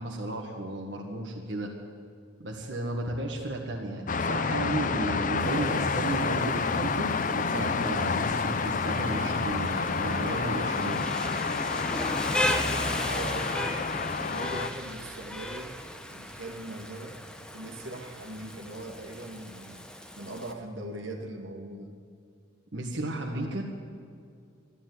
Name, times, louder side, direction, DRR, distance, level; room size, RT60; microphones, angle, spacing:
voice 1, 0.0-1.7 2.4-11.1 22.7-23.6, right 1 dB, 60° right, 0 dB, 1.6 m, -33 dB
sound 1, 4.1-14.7, left 5 dB, 40° left, 0.5 m, -29 dB
Rain, 5.4-20.5, left 1 dB, 5° left, 0.8 m, -37 dB
voice 2, 5.4-5.9 13.0-13.8 14.2-15.8 16.1-17.2 17.5-19.8 20.2-21.9, right 1 dB, 80° right, 3 dB, 1.9 m, -40 dB
Organ, 8.8-13.6, right 4 dB, 35° right, 1.6 m, -46 dB
13.0 x 12.0 x 9.5 m, 2.3 s
head